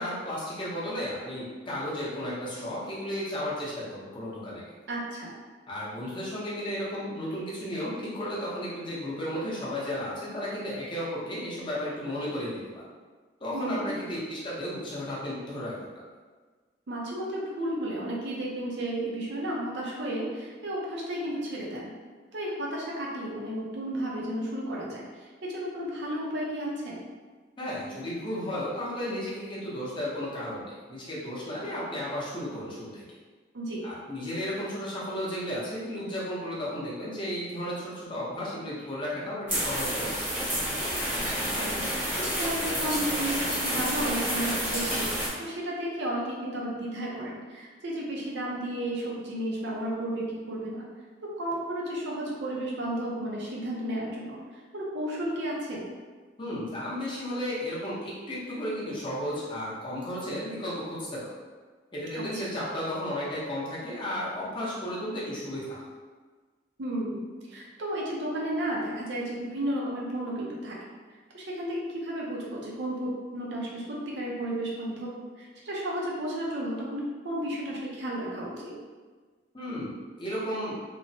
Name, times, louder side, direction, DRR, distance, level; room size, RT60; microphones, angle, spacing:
voice 1, 0.0-4.6 5.7-12.8 13.4-16.0 27.6-33.0 33.8-40.3 56.4-61.3 61.9-65.8 79.5-80.8, equal, 25° left, -7 dB, 0.7 m, -34 dB
voice 2, 4.9-5.3 13.5-13.9 16.9-21.9 22.3-27.0 33.5-33.8 41.2-41.3 41.6-50.9 51.2-55.8 62.1-62.5 66.8-70.8 71.3-78.7, right 1 dB, 65° right, -4 dB, 0.6 m, -33 dB
sound 1, 39.5-45.3, equal, 10° right, 0.8 m, -29 dB
3.0 x 2.0 x 2.7 m, 1.4 s
head